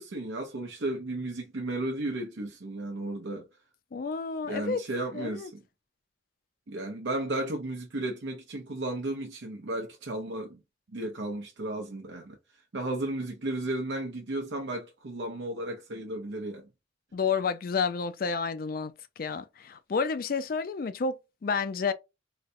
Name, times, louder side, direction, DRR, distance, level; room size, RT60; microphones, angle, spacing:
voice 1, 0.0-3.4 4.5-5.6 6.7-10.6 10.9-12.4 12.7-16.7, right 2 dB, 75° right, 0.6 m, -34 dB
voice 2, 3.9-4.8 5.1-5.5 17.1-18.9 19.2-21.9, left 5 dB, 50° left, 0.4 m, -30 dB
4.0 x 2.1 x 2.6 m
head